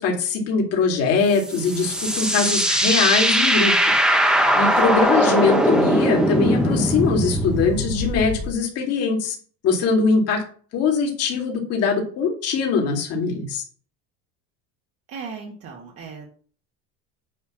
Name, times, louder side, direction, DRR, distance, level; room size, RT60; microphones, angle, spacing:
voice 1, 0.0-9.4 9.6-10.4 10.7-13.6, left 4 dB, 45° left, 1 dB, 2.4 m, -22 dB
sound 1, 1.3-8.5, equal, ahead, 0.8 m, -20 dB
voice 2, 4.3-4.7 15.1-16.3, right 5 dB, 45° right, 0 dB, 1.7 m, -37 dB
9.5 x 3.4 x 5.9 m, 0.42 s
cardioid pair, 170°, 34 cm